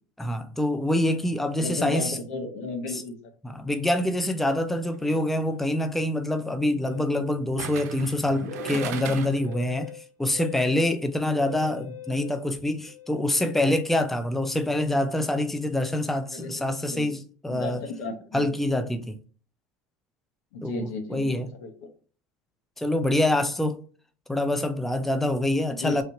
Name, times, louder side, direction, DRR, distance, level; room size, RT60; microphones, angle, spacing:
voice 1, 0.2-2.2 2.9-3.0 3.4-17.8 18.3-19.2 20.6-21.5 22.8-23.8 24.3-26.0, left 1 dB, 5° left, 0.4 m, -26 dB
voice 2, 1.6-3.1 16.3-17.1 17.5-18.5 20.5-21.7 25.7-26.0, left 3 dB, 80° left, 1.0 m, -34 dB
sound 1, 4.9-5.2 7.6-9.5 9.9-10.0, right 7 dB, 90° right, 0.4 m, -37 dB
Musical instrument, 6.8-13.6, left 7 dB, 50° left, 1.3 m, -42 dB
3.3 x 2.8 x 2.9 m
supercardioid pair, 100°, 9 cm